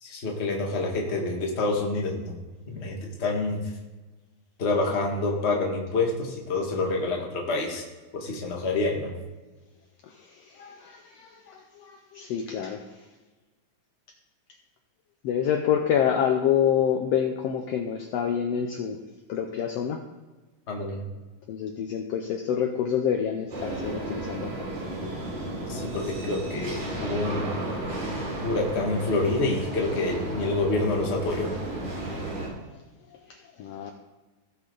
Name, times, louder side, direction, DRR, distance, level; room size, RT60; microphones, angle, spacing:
voice 1, 0.0-2.3 2.7-3.6 4.6-7.8 8.1-9.1 20.7-21.0 25.7-27.5 28.4-31.5, left 3 dB, 30° left, -1 dB, 1.4 m, -27 dB
voice 2, 10.6-12.8 15.2-19.0 19.3-20.0 21.5-24.5 33.6-33.9, left 8 dB, 75° left, 4 dB, 1.5 m, -27 dB
sound 1, 23.5-32.5, right 1 dB, 60° right, 3.7 m, -33 dB
17.0 x 5.9 x 3.9 m, 1.2 s
omnidirectional pair, 3.4 m